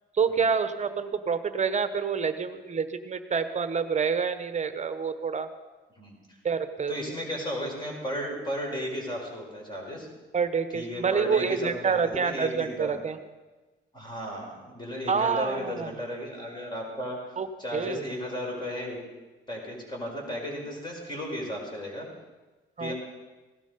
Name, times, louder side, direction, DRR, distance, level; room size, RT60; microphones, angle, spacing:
voice 1, 0.1-5.5 6.4-6.9 10.3-13.2 15.1-15.9 17.4-17.5 17.7-18.1 22.8-22.9, right 6 dB, 35° right, 10 dB, 1.1 m, -27 dB
voice 2, 6.9-10.1 10.7-12.9 13.9-17.2 17.6-19.0 19.5-22.1 22.8-22.9, equal, 20° left, -1 dB, 5.2 m, -34 dB
16.5 x 12.5 x 5.3 m, 1.2 s
cardioid pair, 90°, 20 cm